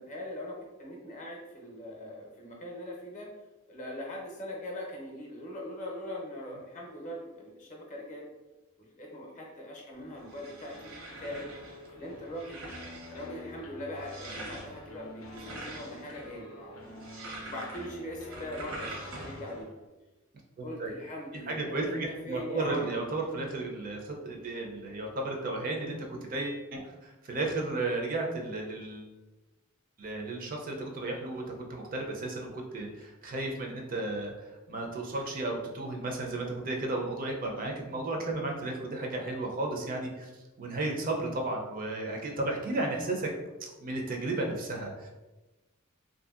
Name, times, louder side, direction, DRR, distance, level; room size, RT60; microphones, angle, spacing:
voice 1, 0.0-3.3 3.7-8.2 9.0-10.9 11.2-11.5 11.9-12.6 13.1-16.8 17.5-19.7 20.6-22.0 22.2-23.1, left 1 dB, 40° left, -1 dB, 0.6 m, -41 dB
sound 1, 9.9-19.6, right 2 dB, 75° right, 0.8 m, -45 dB
sound 2, 10.7-19.9, left 1 dB, 85° left, 0.5 m, -49 dB
voice 2, 20.6-20.9 21.5-29.1 30.0-40.3 40.6-43.3 43.6-45.1, right 2 dB, 45° right, 1 dB, 0.4 m, -34 dB
2.6 x 2.5 x 2.4 m, 1.1 s
head